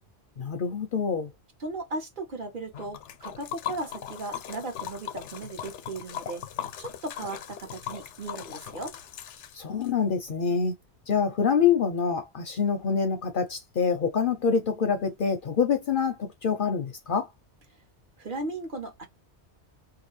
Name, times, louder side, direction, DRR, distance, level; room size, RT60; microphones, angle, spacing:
voice 1, 0.4-1.3 9.5-10.7 11.1-17.3, left 6 dB, 60° left, 0.7 m, -26 dB
voice 2, 1.6-6.4 6.8-8.9 18.2-19.1, right 2 dB, 50° right, 1.2 m, -36 dB
Liquid, 2.7-9.9, left 10 dB, 90° left, 0.9 m, -39 dB
2.8 x 2.3 x 3.0 m
omnidirectional pair, 1.2 m